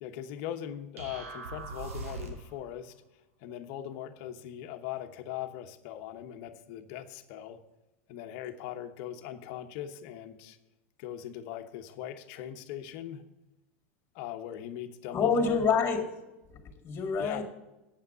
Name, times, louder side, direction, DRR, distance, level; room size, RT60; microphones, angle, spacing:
voice 1, 0.0-2.9 3.4-7.6 8.1-10.6 11.0-13.3 14.1-15.7 17.2-17.4, left 10 dB, 60° left, 7 dB, 1.0 m, -40 dB
sound 1, 1.0-2.6, right 3 dB, 90° right, 1.7 m, -40 dB
voice 2, 15.1-16.0 16.5-17.4, left 5 dB, 30° left, 4 dB, 2.2 m, -27 dB
8.5 x 5.8 x 7.9 m, 0.98 s
hypercardioid pair, 110°, 7 cm